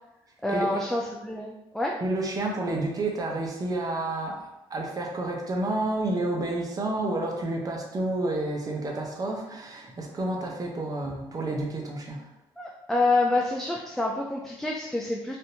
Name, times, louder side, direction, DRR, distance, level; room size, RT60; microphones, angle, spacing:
voice 1, 0.4-1.9 12.6-15.4, left 2 dB, 5° left, -2 dB, 0.4 m, -27 dB
voice 2, 2.0-12.2, right 2 dB, 35° right, 1 dB, 0.8 m, -30 dB
3.4 x 2.6 x 2.8 m, 0.95 s
cardioid pair, 90°, 10 cm